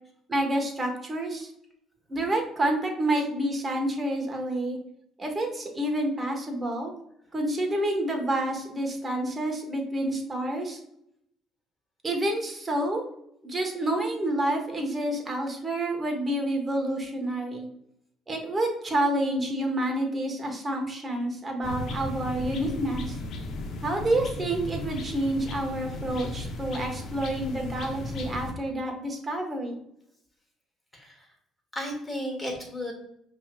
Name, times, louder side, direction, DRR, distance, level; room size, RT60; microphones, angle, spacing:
voice 1, 0.3-1.5 2.1-4.8 5.2-6.9 7.3-10.8 12.0-13.0 13.4-17.7 18.3-23.2 23.8-29.8, right 1 dB, 30° right, 2 dB, 1.1 m, -28 dB
sound 1, 21.6-28.5, left 1 dB, 60° left, 0.7 m, -35 dB
voice 2, 25.9-26.5 30.9-31.3 31.7-32.9, equal, 10° left, 0 dB, 1.5 m, -35 dB
5.4 x 2.9 x 2.2 m, 0.73 s
supercardioid pair, 80°, 0 cm